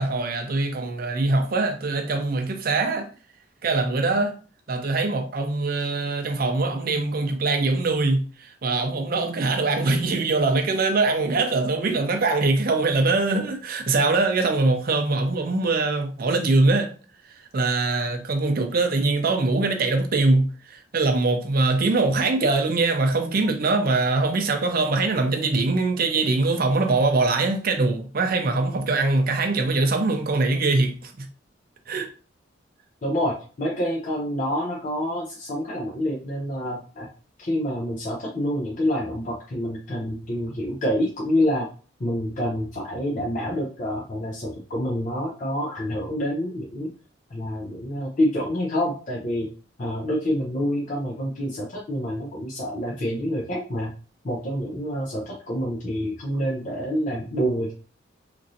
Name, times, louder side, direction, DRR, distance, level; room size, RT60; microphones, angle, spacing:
voice 1, 0.0-3.1 3.6-4.4 4.7-16.9 17.5-31.3 31.9-32.1, right 3 dB, 50° right, 0.5 m, -23 dB
voice 2, 33.0-37.1 37.4-41.7 42.0-46.9 47.3-49.5 49.8-53.9 54.2-57.7, equal, 45° left, 0.5 m, -27 dB
3.0 x 2.6 x 2.6 m
head